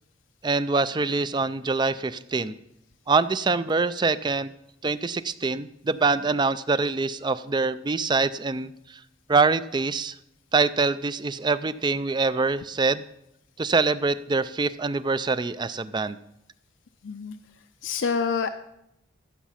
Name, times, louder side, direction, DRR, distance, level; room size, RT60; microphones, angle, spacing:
voice 1, 0.4-2.6 3.1-4.5 4.8-8.7 9.3-10.1 10.5-13.0 13.6-16.2, right 4 dB, 25° right, 15 dB, 0.4 m, -24 dB
voice 2, 17.0-17.4 17.8-18.5, left 5 dB, 70° left, 7 dB, 0.5 m, -26 dB
15.0 x 7.2 x 5.7 m, 0.81 s
head